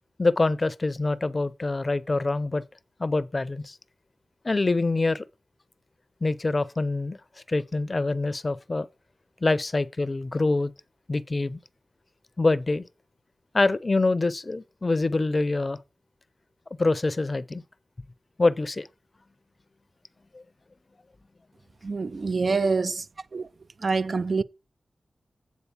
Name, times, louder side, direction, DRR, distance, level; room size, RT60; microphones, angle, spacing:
voice 1, 0.2-2.6 3.0-3.8 4.4-5.3 6.2-7.2 7.5-8.9 9.4-10.7 11.1-11.6 12.4-12.8 13.5-15.8 16.8-17.6 18.4-18.9 20.3-20.4, left 3 dB, 40° left, 0.6 m, -25 dB
voice 2, 21.8-23.1 23.3-23.5 23.8-24.4, right 4 dB, 55° right, 0.4 m, -26 dB
8.3 x 4.1 x 7.1 m
cardioid pair, 65°, 0 cm